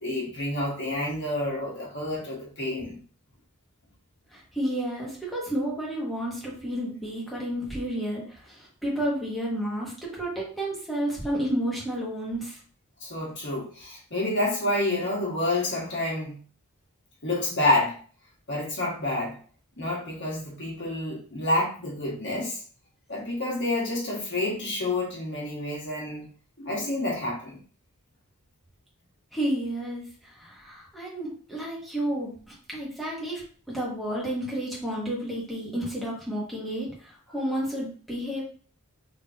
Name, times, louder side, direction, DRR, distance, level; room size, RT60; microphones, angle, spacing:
voice 1, 0.0-3.0 13.0-16.4 17.2-18.0 18.5-19.4 19.8-22.6 23.1-26.3 26.6-27.6, left 1 dB, 50° left, -4 dB, 1.5 m, -28 dB
voice 2, 4.3-12.6 29.3-38.4, right 1 dB, ahead, -5 dB, 1.3 m, -31 dB
3.7 x 3.1 x 2.8 m, 0.41 s
head